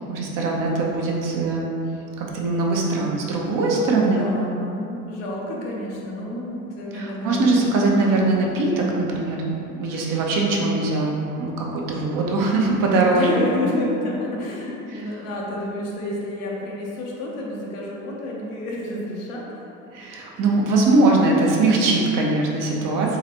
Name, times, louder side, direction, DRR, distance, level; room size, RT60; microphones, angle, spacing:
voice 1, 0.1-1.7 2.2-4.2 6.9-9.4 9.8-13.4 14.9-15.0 19.9-23.2, right 2 dB, 55° right, -2 dB, 0.8 m, -21 dB
voice 2, 3.7-8.0 12.9-19.6 22.9-23.2, left 1 dB, 80° left, -3 dB, 0.9 m, -29 dB
3.9 x 3.2 x 2.9 m, 2.8 s
hypercardioid pair, 70°, 39 cm